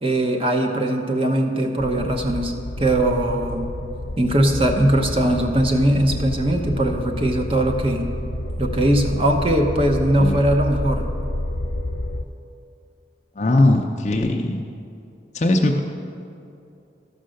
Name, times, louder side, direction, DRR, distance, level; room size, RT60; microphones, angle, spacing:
voice 1, 0.0-3.7 4.2-8.1 8.6-11.1, right 1 dB, 30° right, 4 dB, 0.9 m, -20 dB
sound 1, 1.8-12.2, left 1 dB, 90° left, 0.8 m, -29 dB
voice 2, 13.4-14.7 15.3-15.8, left 1 dB, 40° left, 2 dB, 0.5 m, -19 dB
13.5 x 5.5 x 6.4 m, 2.6 s
head